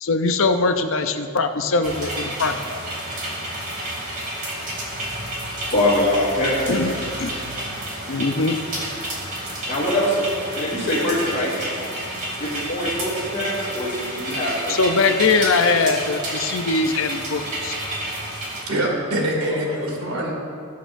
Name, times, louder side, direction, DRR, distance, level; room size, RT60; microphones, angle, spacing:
voice 1, 0.0-2.8 6.7-6.9 7.2-7.3 8.1-8.6 14.7-17.7, left 3 dB, 60° left, 7 dB, 0.6 m, -21 dB
sound 1, 1.8-18.6, right 1 dB, 35° right, 2.6 m, -30 dB
voice 2, 5.7-6.7 9.7-10.2 10.5-11.6 12.4-14.8 19.5-19.8, left 1 dB, 35° left, -10 dB, 2.8 m, -23 dB
voice 3, 18.6-20.3, right 1 dB, 75° right, -2 dB, 2.5 m, -24 dB
19.5 x 8.3 x 2.6 m, 2.4 s
head